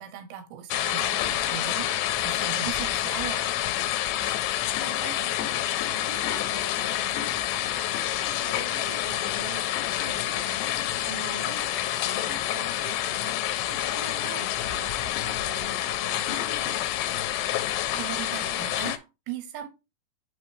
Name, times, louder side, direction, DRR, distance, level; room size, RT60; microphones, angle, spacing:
voice 1, 0.0-3.5 18.0-19.7, right 11 dB, 75° right, 2.5 m, -38 dB
sound 1, 0.7-19.0, left 13 dB, 90° left, 2.8 m, -28 dB
voice 2, 4.7-16.8, right 3 dB, 40° right, 0.6 m, -44 dB
6.4 x 5.8 x 3.2 m
omnidirectional pair, 4.8 m